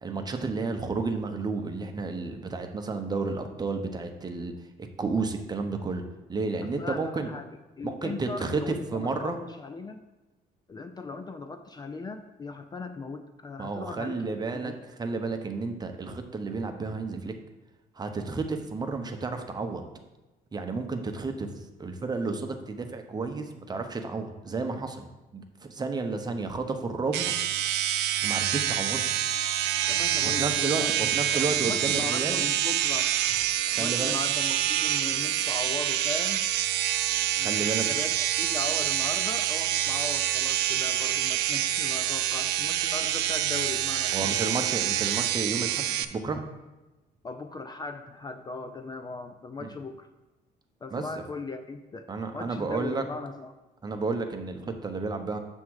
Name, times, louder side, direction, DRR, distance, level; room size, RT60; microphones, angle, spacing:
voice 1, 0.0-4.5 5.0-7.3 7.8-9.4 13.6-14.7 15.0-17.3 18.0-19.9 20.5-25.1 25.3-27.3 28.2-29.1 30.4-32.4 33.7-34.1 37.4-37.9 44.1-46.4 49.6-49.7 50.9-51.0 52.1-53.0 53.8-55.4, right 4 dB, 25° right, 5 dB, 0.9 m, -31 dB
voice 2, 6.6-10.0 10.7-14.8 29.9-30.9 31.3-33.1 33.8-36.5 37.4-44.3 47.2-50.1 50.8-52.1 52.3-53.6, left 3 dB, 25° left, 8 dB, 0.4 m, -38 dB
sound 1, 27.1-46.1, right 12 dB, 80° right, 0.5 m, -27 dB
7.4 x 3.6 x 6.4 m, 1.1 s
cardioid pair, 110°, 17 cm